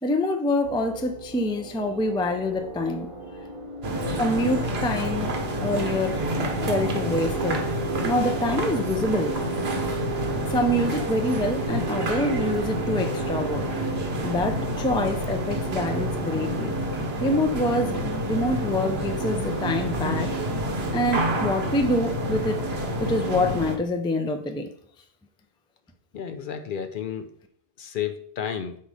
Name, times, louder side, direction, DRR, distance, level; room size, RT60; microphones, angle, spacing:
voice 1, 0.0-3.1 4.2-5.3 5.6-6.2 6.6-7.6 8.0-9.4 10.5-13.7 14.2-16.7 17.2-20.3 20.9-22.6 23.0-24.7, left 1 dB, 10° left, 0.3 m, -26 dB
sound 1, 0.6-13.8, right 3 dB, 35° right, 0.8 m, -36 dB
sound 2, 3.8-23.8, right 1 dB, 75° right, 1.2 m, -28 dB
voice 2, 26.1-27.2 27.8-28.8, left 8 dB, 60° left, 0.6 m, -32 dB
5.6 x 4.1 x 4.8 m
omnidirectional pair, 1.1 m